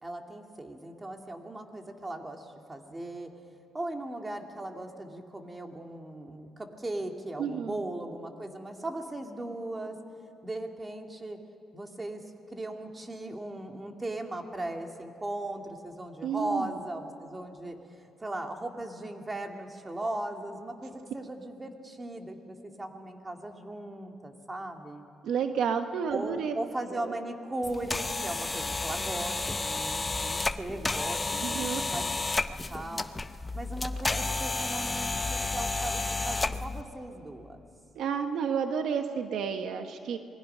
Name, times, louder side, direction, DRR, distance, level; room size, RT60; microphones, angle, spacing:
voice 1, 0.0-3.3 3.7-10.0 10.4-11.4 11.7-25.1 26.1-32.2 32.7-33.1 33.5-35.1 35.3-37.6, right 1 dB, 20° right, 3 dB, 2.3 m, -38 dB
voice 2, 7.4-7.8 16.2-16.7 25.2-26.5 26.9-27.2 31.4-31.8 37.9-40.2, right 7 dB, 75° right, 7 dB, 1.1 m, -31 dB
sound 1, 27.6-36.8, left 3 dB, 20° left, 0.7 m, -31 dB
27.0 x 20.5 x 5.6 m, 2.6 s
cardioid pair, 90°, 0 cm